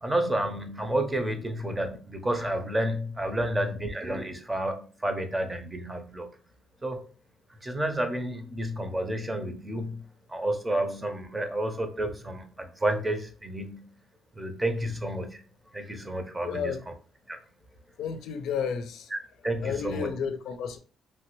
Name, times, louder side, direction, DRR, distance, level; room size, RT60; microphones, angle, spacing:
voice 1, 0.0-6.3 6.8-7.1 7.6-13.9 14.3-15.4 15.7-16.7 17.3-17.4 19.1-19.2 19.4-20.1, right 1 dB, 20° right, 0.7 m, -30 dB
voice 2, 16.4-16.8 18.0-19.1 19.6-20.8, left 7 dB, 80° left, 0.4 m, -31 dB
3.1 x 2.2 x 3.0 m
cardioid pair, 90°, 0 cm